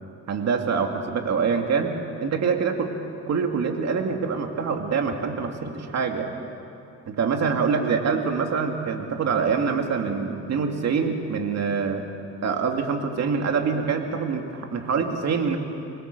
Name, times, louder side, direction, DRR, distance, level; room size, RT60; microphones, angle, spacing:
voice 1, 0.3-2.9 3.3-6.3 7.1-12.1 12.4-15.6, right 5 dB, 60° right, 4 dB, 2.6 m, -25 dB
27.0 x 21.5 x 6.8 m, 2.6 s
cardioid pair, 90°, 30 cm